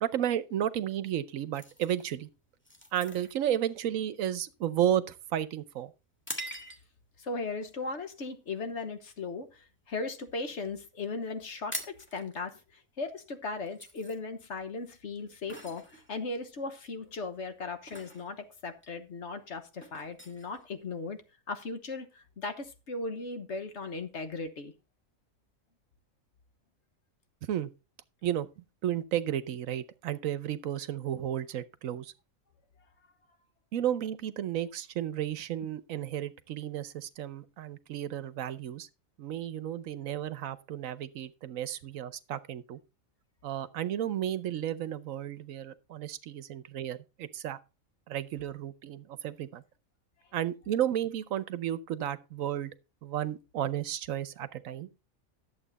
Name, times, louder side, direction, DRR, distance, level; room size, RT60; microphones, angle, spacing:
voice 1, 0.0-2.3 2.9-5.9 27.5-27.7 28.2-28.5 28.8-32.1 33.7-38.9 39.2-42.8 43.4-47.6 48.1-49.6 50.3-52.7 53.0-54.9, right 11 dB, 75° right, 1.1 m, -33 dB
sound 1, 1.5-7.1 7.7-7.9 8.4-8.7 9.1-10.2 10.5-10.6 10.8-11.0 11.3-21.3, equal, 10° left, 1.6 m, -45 dB
voice 2, 7.2-24.7, left 3 dB, 55° left, 1.4 m, -37 dB
11.5 x 7.5 x 4.0 m
omnidirectional pair, 1.4 m